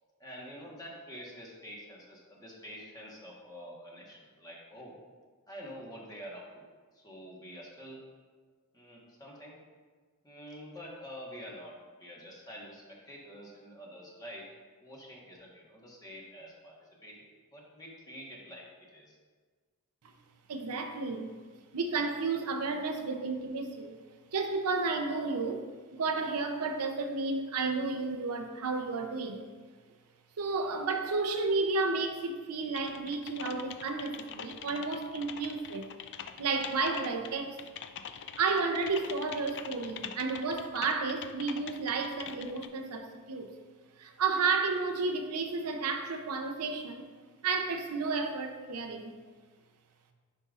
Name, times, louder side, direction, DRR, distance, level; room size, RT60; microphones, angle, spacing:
voice 1, 0.2-5.0 5.5-6.6 6.9-8.0 8.7-9.6 10.2-11.7 12.0-14.4 14.8-18.6 18.9-19.2, equal, 15° left, -3 dB, 1.3 m, -47 dB
voice 2, 20.5-21.3 21.7-24.0 24.3-25.6 25.9-29.5 30.4-35.9 36.4-37.6 38.4-43.5 44.0-47.1 47.4-49.1, right 4 dB, 80° right, 5 dB, 0.6 m, -32 dB
Typing, 32.8-42.7, left 8 dB, 55° left, 0.3 m, -44 dB
9.6 x 5.2 x 2.5 m, 1.5 s
head